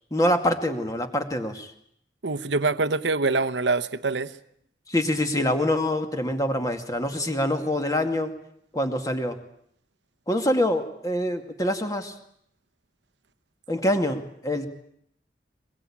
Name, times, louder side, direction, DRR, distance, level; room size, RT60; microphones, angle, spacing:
voice 1, 0.1-1.7 4.9-8.3 8.7-9.4 10.3-12.1 13.7-14.7, left 1 dB, 20° left, 2.2 m, -25 dB
voice 2, 2.2-4.3, right 3 dB, 75° right, 1.0 m, -25 dB
23.0 x 22.5 x 8.7 m
head